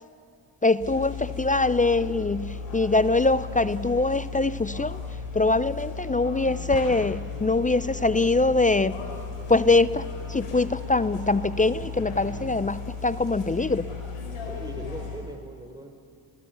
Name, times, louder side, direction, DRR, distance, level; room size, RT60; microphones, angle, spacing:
voice 1, 0.6-5.0 5.3-9.0 9.5-13.9, left 3 dB, 15° left, 16 dB, 0.5 m, -23 dB
sound 1, 0.8-15.2, left 5 dB, 80° left, 4.9 m, -36 dB
Explosion, 6.7-8.5, left 7 dB, 45° left, 1.1 m, -42 dB
sound 2, 8.9-12.6, right 7 dB, 85° right, 2.4 m, -49 dB
voice 2, 14.4-15.9, right 1 dB, 10° right, 4 dB, 3.6 m, -40 dB
28.5 x 16.0 x 7.0 m, 2.4 s
supercardioid pair, 60°, 49 cm